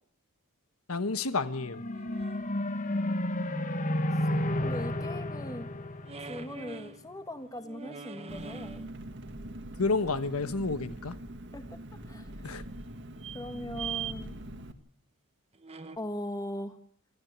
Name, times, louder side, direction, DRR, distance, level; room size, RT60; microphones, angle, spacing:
voice 1, 0.9-1.8 9.8-11.1 12.4-12.6, left 3 dB, 75° left, 1.3 m, -30 dB
sound 1, 1.4-6.9, left 1 dB, 35° left, 1.5 m, -32 dB
sound 2, 1.7-2.4 6.0-7.0 7.5-8.9 12.1-12.2 13.2-14.1 15.5-16.0, right 7 dB, 25° right, 1.3 m, -42 dB
voice 2, 2.8-3.1 4.6-5.7 6.3-8.8 11.5-11.8 12.1-12.3 13.3-14.3 16.0-16.8, left 1 dB, 15° left, 1.6 m, -40 dB
Engine, 8.3-14.7, right 1 dB, 55° right, 1.8 m, -43 dB
27.0 x 13.5 x 9.5 m
head